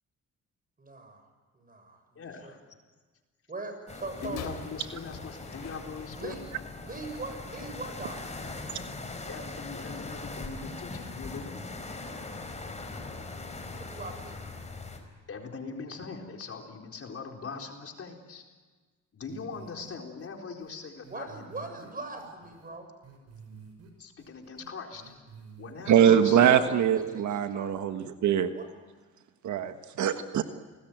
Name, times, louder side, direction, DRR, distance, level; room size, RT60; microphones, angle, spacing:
voice 1, 0.8-1.3 1.5-2.5 3.5-4.5 6.2-6.4 6.8-8.2 13.7-14.4 21.1-22.9 26.0-27.8 28.5-28.7, right 3 dB, 30° right, 7 dB, 6.9 m, -41 dB
voice 2, 2.1-2.7 4.2-6.4 9.2-11.7 15.3-18.4 19.1-21.4 24.0-25.1 25.6-26.6, left 4 dB, 50° left, 2 dB, 4.3 m, -41 dB
sound 1, 3.9-15.0, left 3 dB, 20° left, 5.0 m, -41 dB
sound 2, 4.2-6.5 7.3-7.4, left 6 dB, 85° left, 3.6 m, -45 dB
sound 3, 19.3-19.9 20.2-20.3 20.6-20.7 21.0-22.7 23.0-23.9 24.2-25.9 26.2-26.6 27.0-27.1, right 5 dB, 55° right, 6.5 m, -50 dB
voice 3, 25.9-28.5 29.4-30.4, right 9 dB, 70° right, 8 dB, 1.4 m, -23 dB
29.0 x 20.5 x 9.2 m, 1.4 s
cardioid pair, 90°, 30 cm